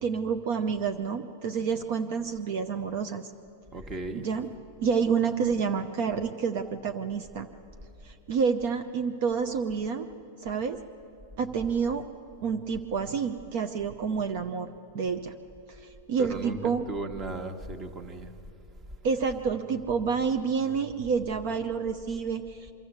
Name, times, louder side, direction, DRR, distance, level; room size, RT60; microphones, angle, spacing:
voice 1, 0.0-3.3 4.2-4.5 4.8-7.5 8.0-10.1 10.4-10.8 11.4-12.1 12.4-14.7 14.9-15.3 15.7-16.8 19.0-22.7, right 6 dB, 60° right, 6 dB, 0.8 m, -29 dB
voice 2, 3.7-4.2 16.2-18.3, right 2 dB, 25° right, 7 dB, 1.5 m, -36 dB
24.5 x 13.0 x 8.1 m, 2.7 s
hypercardioid pair, 130°, 0 cm